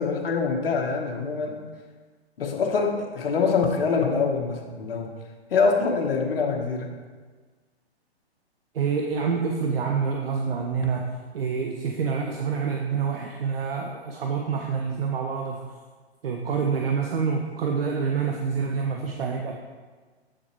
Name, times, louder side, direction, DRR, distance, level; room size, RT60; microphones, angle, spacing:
voice 1, 0.0-1.6 2.4-5.1 5.5-6.9, left 5 dB, 60° left, 2 dB, 1.3 m, -24 dB
voice 2, 8.7-15.7 16.2-19.5, right 5 dB, 60° right, 1 dB, 0.8 m, -27 dB
7.7 x 6.7 x 3.1 m, 1.4 s
hypercardioid pair, 140°, 33 cm